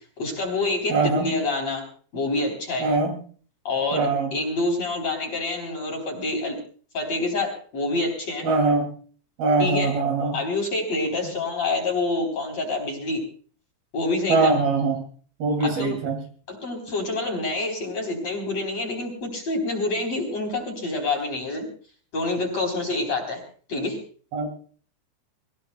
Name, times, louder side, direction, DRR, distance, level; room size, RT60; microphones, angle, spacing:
voice 1, 0.2-1.8 2.1-2.9 3.6-4.1 4.3-6.6 6.9-8.5 9.6-9.9 10.3-13.2 13.9-14.5 15.6-16.0 16.5-21.7 22.1-23.4 23.7-24.0, left 2 dB, 35° left, 2 dB, 4.4 m, -27 dB
voice 2, 0.9-1.3 2.8-3.1 3.9-4.3 8.4-8.9 9.4-10.4 14.3-15.0 15.4-16.2 24.3-24.5, right 3 dB, 55° right, 4 dB, 4.1 m, -22 dB
27.0 x 16.0 x 2.2 m, 0.42 s
omnidirectional pair, 5.7 m